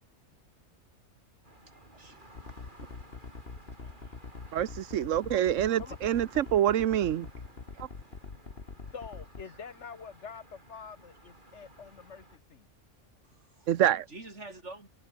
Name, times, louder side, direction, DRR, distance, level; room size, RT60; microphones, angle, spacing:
sound 1, 1.4-12.4, right 1 dB, 40° right, 7.1 m, -56 dB
voice 1, 1.7-2.7 3.8-4.6 7.7-7.8 9.5-9.6 13.2-13.7 14.1-14.9, right 2 dB, 70° right, 5.2 m, -49 dB
sound 2, 2.4-9.4, left 4 dB, 55° left, 2.0 m, -44 dB
voice 2, 4.5-7.3 7.8-7.9 13.7-14.0, right 11 dB, 90° right, 1.1 m, -26 dB
voice 3, 8.9-12.7, left 6 dB, 70° left, 1.8 m, -46 dB
omnidirectional pair, 1.3 m